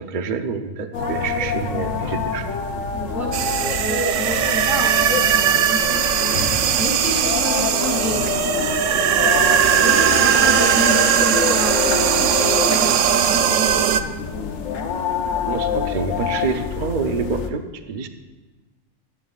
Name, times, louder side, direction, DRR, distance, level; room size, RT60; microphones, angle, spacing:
voice 1, 0.0-2.5 15.5-18.1, right 5 dB, 45° right, 7 dB, 0.7 m, -27 dB
sound 1, 0.9-17.5, left 6 dB, 75° left, 1.2 m, -27 dB
voice 2, 2.9-14.1, equal, 15° right, -4 dB, 3.1 m, -30 dB
sound 2, 3.3-14.0, right 9 dB, 70° right, 0.9 m, -19 dB
sound 3, 4.2-4.4 5.2-5.6 6.3-6.6 7.1-7.3 7.5-7.6 8.2-8.5 9.5-9.6 10.6-10.8 11.0-11.1 12.6-12.9, left 4 dB, 55° left, 1.2 m, -34 dB
15.5 x 13.0 x 2.4 m, 1.2 s
omnidirectional pair, 1.4 m